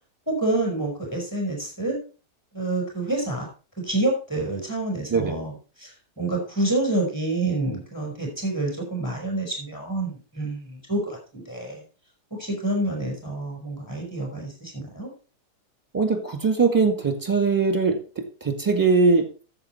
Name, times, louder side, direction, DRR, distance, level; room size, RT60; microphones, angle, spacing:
voice 1, 0.3-2.0 2.5-3.5 3.8-5.5 5.8-11.8 12.3-15.1, right 2 dB, 10° left, 0 dB, 5.0 m, -28 dB
voice 2, 15.9-19.3, right 4 dB, 10° right, 5 dB, 2.0 m, -21 dB
10.5 x 8.0 x 4.4 m, 0.36 s
omnidirectional pair, 1.7 m